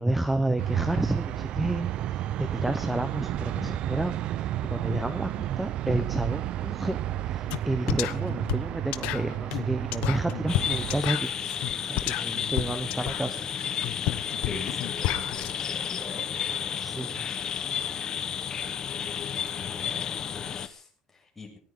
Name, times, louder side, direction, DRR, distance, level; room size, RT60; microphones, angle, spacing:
voice 1, 0.0-13.4 16.8-17.3, right 1 dB, 5° right, 11 dB, 1.0 m, -30 dB
sound 1, 0.6-11.0, right 12 dB, 50° right, 0.7 m, -31 dB
sound 2, 7.5-7.6 7.9-15.5, left 15 dB, 70° left, 1.1 m, -31 dB
sound 3, 10.5-20.7, left 8 dB, 35° left, 1.3 m, -32 dB
voice 2, 14.4-16.3 19.3-21.6, left 3 dB, 15° left, 0 dB, 6.9 m, -44 dB
19.0 x 18.0 x 4.0 m, 0.43 s
cardioid pair, 150°, 2 cm